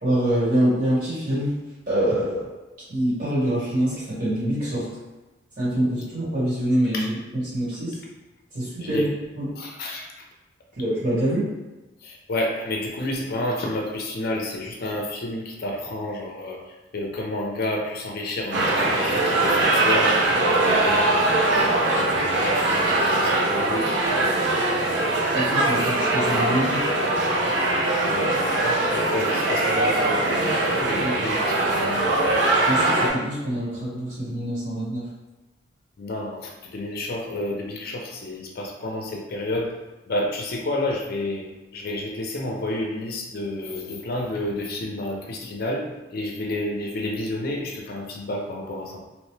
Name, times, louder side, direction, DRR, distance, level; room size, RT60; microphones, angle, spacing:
voice 1, 0.0-1.6 1.9-2.5 2.9-4.9 5.6-8.0 8.5-9.1 9.3-9.5 10.8-11.5 25.3-26.9 30.8-31.3 32.6-35.1, right 1 dB, 45° right, -9 dB, 1.5 m, -25 dB
voice 2, 8.8-9.1 9.6-10.1 12.0-16.6 16.9-21.4 22.0-23.8 28.0-32.1 36.0-39.7 40.1-41.4 41.7-45.8 46.1-49.0, left 1 dB, 55° left, -1 dB, 0.5 m, -30 dB
sound 1, 18.5-33.1, right 2 dB, 65° right, 0.5 m, -21 dB
3.0 x 2.0 x 3.1 m, 1.1 s
head